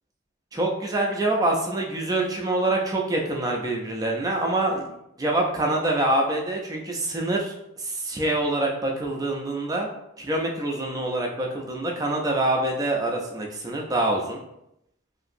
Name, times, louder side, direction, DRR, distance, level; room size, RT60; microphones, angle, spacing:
voice 1, 0.5-4.8 5.2-9.9 10.2-14.4, right 2 dB, 20° right, 0 dB, 0.4 m, -25 dB
2.8 x 2.5 x 2.5 m, 0.83 s
head